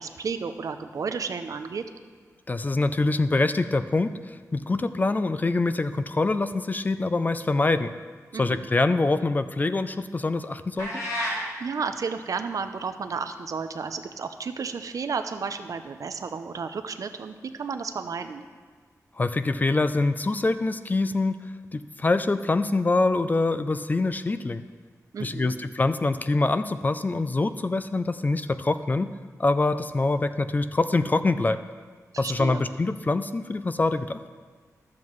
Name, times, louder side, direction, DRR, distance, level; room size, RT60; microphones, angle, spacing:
voice 1, 0.0-1.9 8.3-8.7 11.6-18.4 25.1-25.6 32.1-32.6, right 5 dB, 70° right, 9 dB, 0.5 m, -32 dB
voice 2, 2.5-7.9 8.4-11.0 19.2-21.4 21.7-24.6 25.2-29.1 29.4-31.6 32.2-34.2, left 3 dB, 30° left, 11 dB, 0.3 m, -25 dB
sound 1, 10.8-11.4, equal, 70° left, 2.4 m, -29 dB
12.0 x 7.3 x 3.1 m, 1.5 s
wide cardioid pair, 120°, 6 cm